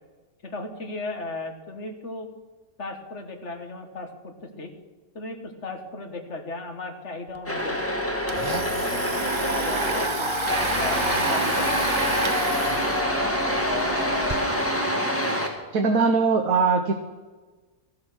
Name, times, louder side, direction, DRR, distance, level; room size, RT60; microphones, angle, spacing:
voice 1, 0.4-2.3 2.8-4.7 5.1-7.8 8.3-10.3 10.8-12.1, left 2 dB, 50° left, 5 dB, 1.9 m, -36 dB
Domestic sounds home sounds, 7.3-7.4 7.7-14.4, right 4 dB, 35° right, 0.4 m, -30 dB
sound 1, 7.5-10.1 10.5-15.5, equal, 10° left, 1.9 m, -26 dB
sound 2, 9.9-14.7, left 6 dB, 75° left, 1.4 m, -33 dB
voice 2, 15.7-16.9, right 4 dB, 70° right, 5 dB, 1.4 m, -20 dB
14.5 x 11.5 x 6.2 m, 1.3 s
omnidirectional pair, 1.5 m